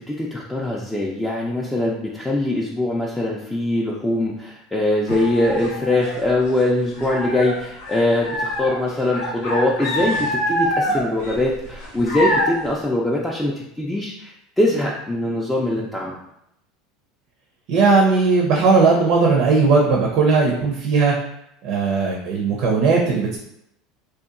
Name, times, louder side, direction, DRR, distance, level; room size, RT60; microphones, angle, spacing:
voice 1, 0.0-16.1, left 1 dB, 10° left, -4 dB, 0.4 m, -22 dB
sound 1, 5.1-6.6 6.9-12.7, equal, 85° left, 0.7 m, -25 dB
voice 2, 17.7-21.1 21.6-23.4, right 4 dB, 60° right, -1 dB, 0.5 m, -17 dB
2.7 x 2.2 x 2.4 m, 0.79 s
hypercardioid pair, 90°, 0 cm